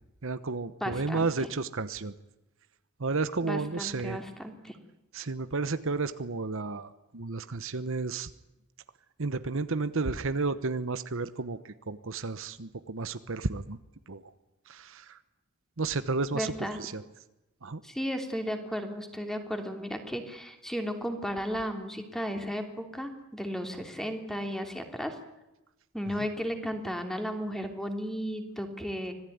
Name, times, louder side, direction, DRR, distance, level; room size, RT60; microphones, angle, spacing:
voice 1, 0.2-2.1 3.0-4.2 5.1-8.3 9.2-13.8 14.1-14.3 14.7-15.2 15.8-17.0 17.6-17.8, right 3 dB, 65° right, 12 dB, 1.0 m, -32 dB
voice 2, 0.8-1.3 3.4-4.7 16.3-16.8 17.8-22.6 22.9-25.1 25.9-29.1, equal, ahead, 5 dB, 3.0 m, -34 dB
25.5 x 17.5 x 9.5 m, 0.96 s
head